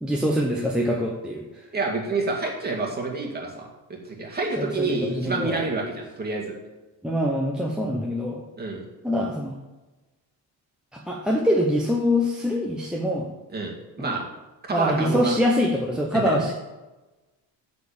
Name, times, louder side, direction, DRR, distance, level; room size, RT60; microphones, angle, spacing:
voice 1, 0.0-1.4 4.6-5.6 7.0-8.4 9.0-9.5 10.9-13.2 14.0-14.2 14.7-16.5, equal, ahead, -1 dB, 0.8 m, -24 dB
voice 2, 1.7-6.5 8.6-8.8 13.5-14.2 14.7-15.3 16.3-16.4, right 3 dB, 25° right, -2 dB, 2.1 m, -28 dB
9.4 x 4.3 x 7.1 m, 1.1 s
cardioid pair, 150°, 40 cm